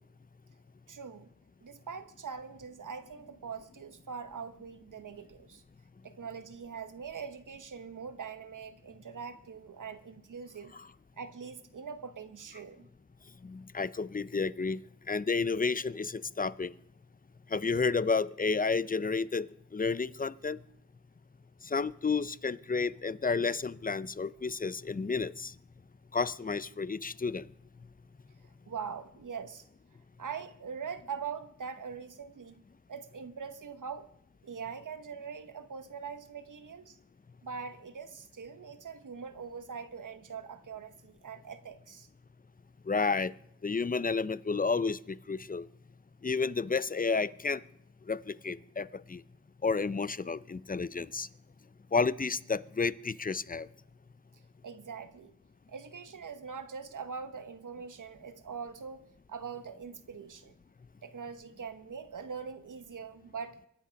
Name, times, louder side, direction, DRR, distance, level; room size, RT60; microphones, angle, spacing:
voice 1, 0.9-1.3 1.6-5.6 6.0-10.7 11.2-12.9 28.4-29.7 30.2-32.6 32.9-34.1 34.4-37.0 37.4-42.1 54.6-55.3 55.7-60.5 61.0-63.6, right 6 dB, 85° right, 1.2 m, -42 dB
voice 2, 13.4-14.8 15.1-16.7 17.5-20.6 21.6-25.5 26.1-27.5 42.9-43.3 43.6-45.7 46.2-47.6 48.1-49.2 49.6-51.3 51.9-53.7, left 4 dB, 30° left, 0.6 m, -31 dB
24.0 x 10.0 x 5.2 m
wide cardioid pair, 65°, 30 cm